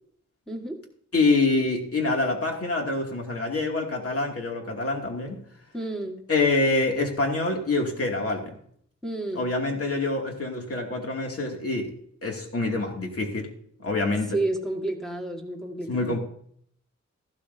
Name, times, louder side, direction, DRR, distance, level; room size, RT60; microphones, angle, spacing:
voice 1, 0.5-0.8 5.7-6.3 9.0-9.5 14.3-16.2, right 2 dB, ahead, 1.7 m, -31 dB
voice 2, 1.1-5.4 6.3-8.6 9.4-11.9 12.2-13.5 13.8-14.4 15.9-16.2, left 3 dB, 50° left, 2.5 m, -26 dB
14.5 x 12.0 x 2.7 m
wide cardioid pair, 125°, 29 cm